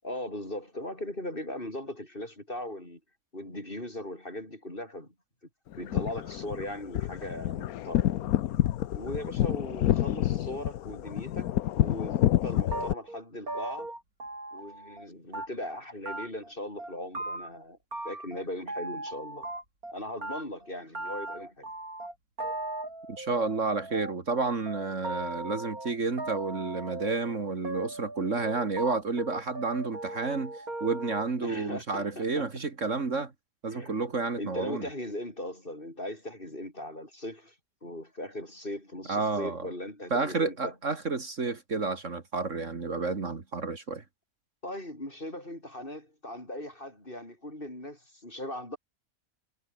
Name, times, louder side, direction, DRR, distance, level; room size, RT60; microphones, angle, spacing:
voice 1, 0.0-3.0 3.3-5.1 5.8-8.2 8.9-13.9 14.5-17.8 18.0-19.5 19.9-21.7 31.4-32.5 33.7-34.0 34.3-37.6 37.8-40.7 44.6-48.8, left 1 dB, 35° left, 7.9 m, -39 dB
sound 1, 5.7-12.9, left 12 dB, 80° left, 1.2 m, -28 dB
sound 2, 12.7-15.1 15.3-15.8 16.1-16.5 16.8-17.6 17.9-19.9 20.2-31.2, right 2 dB, 75° right, 7.6 m, -38 dB
voice 2, 23.1-30.5 30.8-33.3 33.6-34.9 39.1-39.7 40.1-44.0, right 4 dB, 55° right, 2.5 m, -30 dB
omnidirectional pair, 1.5 m